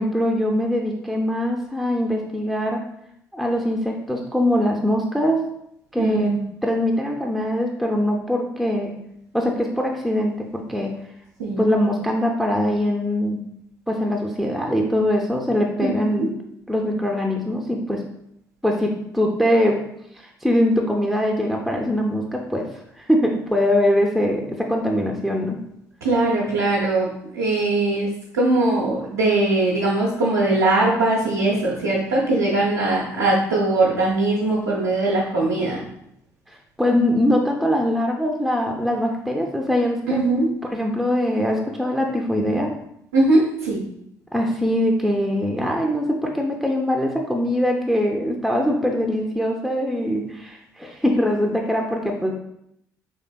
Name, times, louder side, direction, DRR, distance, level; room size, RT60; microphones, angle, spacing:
voice 1, 0.0-2.8 3.3-5.4 5.9-6.3 6.6-9.0 9.3-10.9 11.6-13.4 13.9-16.3 16.7-18.0 18.6-19.8 20.1-22.7 23.0-25.6 36.5-40.2 40.7-42.7 44.3-52.3, left 1 dB, ahead, 1 dB, 0.4 m, -22 dB
voice 2, 6.0-6.4 11.4-11.6 15.8-16.3 26.0-35.8 40.1-40.5 43.1-43.8, right 2 dB, 80° right, -7 dB, 0.7 m, -21 dB
3.6 x 3.2 x 2.2 m, 0.75 s
figure-of-eight pair, 50°, 9 cm